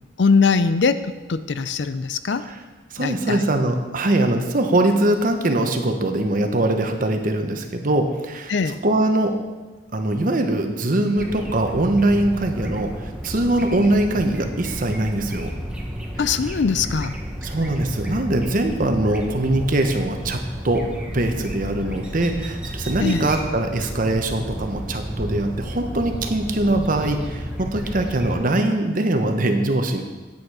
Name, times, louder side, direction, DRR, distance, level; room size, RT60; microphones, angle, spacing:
voice 1, 0.2-2.4 3.0-3.4 8.5-8.8 16.2-17.2 23.0-23.3, left 5 dB, 65° left, 12 dB, 0.5 m, -21 dB
voice 2, 2.9-8.5 8.8-9.4 9.9-15.5 17.4-30.0, right 1 dB, 45° right, 5 dB, 1.0 m, -22 dB
sound 1, 11.2-28.4, equal, 5° right, 1.2 m, -32 dB
9.0 x 8.9 x 4.8 m, 1.2 s
head